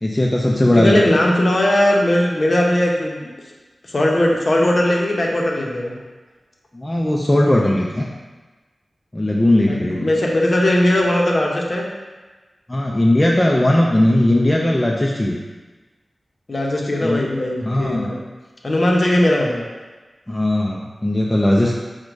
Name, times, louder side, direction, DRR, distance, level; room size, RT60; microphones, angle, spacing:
voice 1, 0.0-1.2 6.7-8.1 9.1-10.0 12.7-15.4 17.0-17.3 17.6-18.1 20.3-21.7, left 1 dB, 15° left, -2 dB, 0.3 m, -18 dB
voice 2, 0.7-3.3 3.8-6.0 9.7-11.8 16.5-18.2 18.6-19.6, left 1 dB, 45° left, -1 dB, 0.7 m, -18 dB
5.0 x 2.2 x 4.6 m, 1.3 s
wide cardioid pair, 100°, 0 cm